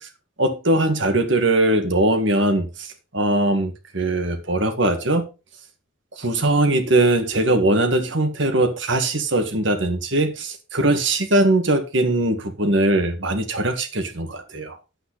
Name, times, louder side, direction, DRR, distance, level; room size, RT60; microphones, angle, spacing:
voice 1, 0.4-5.3 6.2-14.8, right 1 dB, 60° right, 1.8 m, -21 dB
9.3 x 8.2 x 4.1 m
head